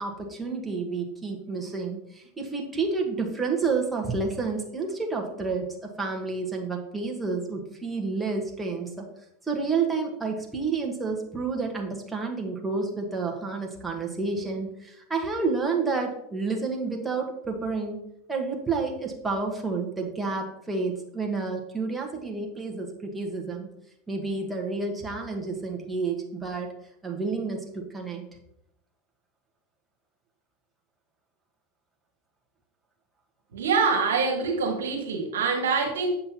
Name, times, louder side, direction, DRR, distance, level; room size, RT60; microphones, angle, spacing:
voice 1, 0.0-9.1 9.5-18.0 18.3-23.7 24.1-26.7 27.0-28.2, right 4 dB, 10° right, 0 dB, 1.2 m, -30 dB
voice 2, 33.5-36.1, right 5 dB, 85° right, 2 dB, 1.3 m, -25 dB
7.6 x 5.5 x 2.9 m, 0.78 s
hypercardioid pair, 100°, 0 cm